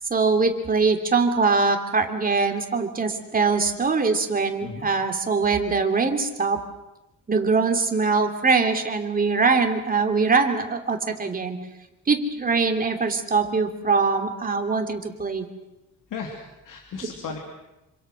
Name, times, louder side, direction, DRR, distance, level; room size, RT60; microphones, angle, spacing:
voice 1, 0.1-6.6 7.3-11.6 12.1-15.5, right 4 dB, 25° right, 4 dB, 2.9 m, -22 dB
voice 2, 16.1-17.4, left 5 dB, 65° left, 1 dB, 3.2 m, -35 dB
27.5 x 25.5 x 6.3 m, 0.97 s
cardioid pair, 140°, 34 cm